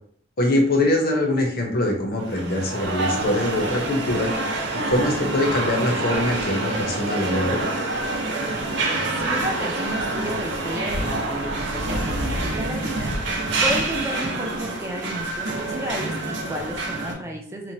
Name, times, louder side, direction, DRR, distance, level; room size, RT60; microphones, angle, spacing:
voice 1, 0.4-4.3 4.7-7.6, left 1 dB, 50° left, 1 dB, 0.6 m, -23 dB
sound 1, 2.2-17.1, right 2 dB, 65° right, 0.6 m, -27 dB
voice 2, 9.2-13.3 13.6-17.7, equal, 15° right, 1 dB, 0.4 m, -32 dB
2.9 x 2.1 x 2.6 m, 0.62 s
head